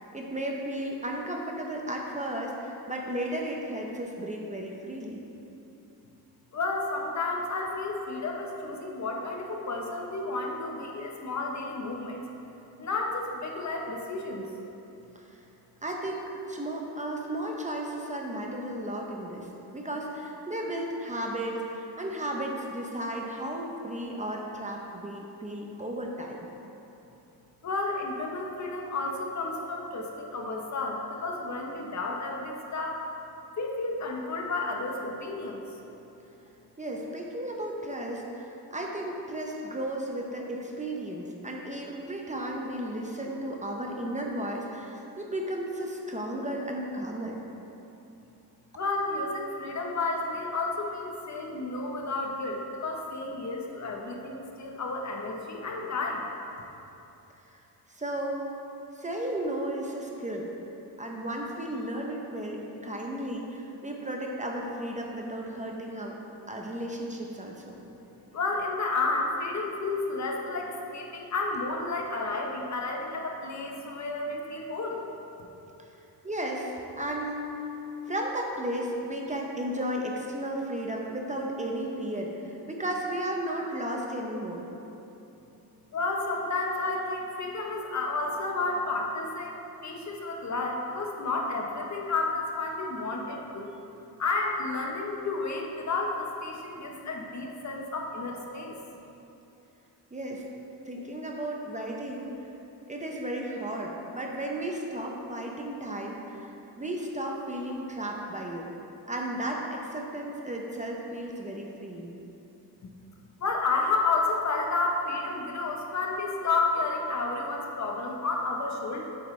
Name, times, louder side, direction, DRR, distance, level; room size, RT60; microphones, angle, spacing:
voice 1, 0.1-5.2 15.1-15.3 15.8-26.4 36.8-47.4 57.5-57.6 57.9-58.5 59.0-60.5 61.0-66.2 66.5-67.8 76.2-77.5 78.0-84.7 100.1-100.4 100.8-102.5 102.9-108.7 109.1-112.1, right 1 dB, 20° right, 0 dB, 0.7 m, -34 dB
voice 2, 6.5-12.2 12.8-14.5 27.6-33.0 33.6-35.6 48.7-56.3 68.3-75.0 85.9-93.7 94.2-98.7 113.4-119.1, left 3 dB, 50° left, 1 dB, 0.9 m, -31 dB
8.0 x 8.0 x 3.2 m, 2.9 s
wide cardioid pair, 145°, 37 cm